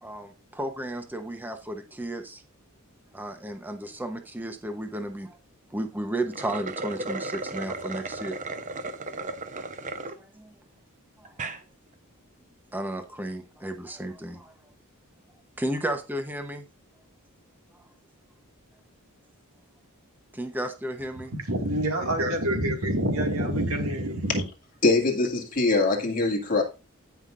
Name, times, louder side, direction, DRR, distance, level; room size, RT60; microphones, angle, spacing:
voice 1, 0.0-2.4 3.1-5.4 5.7-8.4 10.2-10.5 11.2-11.4 12.7-14.5 15.6-16.7 20.3-21.3, right 1 dB, 10° right, 0.9 m, -33 dB
sound 1, 6.2-10.1 10.7-10.8 11.2-11.6, right 3 dB, 35° right, 0.9 m, -35 dB
voice 2, 21.3-24.4, right 1 dB, 70° right, 2.1 m, -26 dB
voice 3, 24.8-26.6, left 3 dB, 40° left, 2.2 m, -23 dB
16.0 x 5.8 x 2.6 m
head